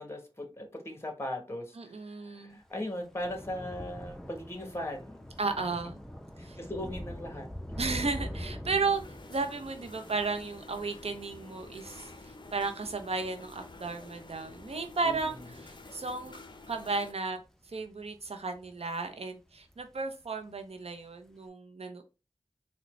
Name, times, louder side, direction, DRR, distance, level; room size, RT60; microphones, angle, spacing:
voice 1, 0.0-5.3 6.4-7.5 15.0-15.5, left 1 dB, 25° left, 1.0 m, -39 dB
voice 2, 1.8-2.6 5.4-6.0 6.4-6.6 7.8-9.0 9.3-16.3 16.7-17.4 17.7-22.0, right 4 dB, 85° right, 0.6 m, -34 dB
Thunder / Rain, 2.6-19.2 19.5-20.0 20.2-20.4, equal, 5° left, 0.6 m, -45 dB
sound 1, 8.9-17.2, left 3 dB, 50° left, 0.5 m, -50 dB
3.9 x 2.2 x 3.0 m
wide cardioid pair, 40°, 10 cm